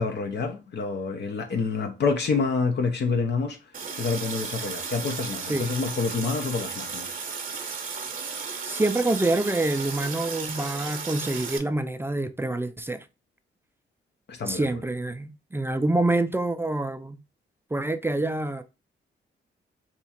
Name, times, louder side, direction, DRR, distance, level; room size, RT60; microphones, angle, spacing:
voice 1, 0.0-3.6 4.0-7.1 14.3-14.8, left 4 dB, 60° left, 0.6 m, -27 dB
Water tap faucet, 3.7-11.6, right 5 dB, 45° right, 0.7 m, -34 dB
voice 2, 8.6-13.1 14.5-17.2 17.7-18.6, right 2 dB, 10° right, 0.3 m, -26 dB
2.9 x 2.4 x 4.2 m
cardioid pair, 80°, 19 cm